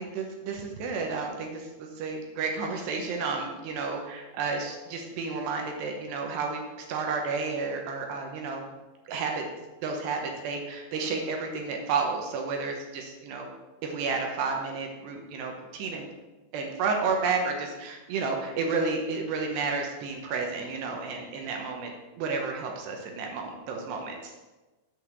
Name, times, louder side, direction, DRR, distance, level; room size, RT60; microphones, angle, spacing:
voice 1, 0.0-6.6 6.9-8.7 9.1-9.4 9.8-13.5 13.8-16.1 16.5-21.9 22.2-24.3, right 4 dB, 70° right, 2 dB, 2.8 m, -31 dB
8.1 x 5.5 x 6.8 m, 1.2 s
omnidirectional pair, 5.5 m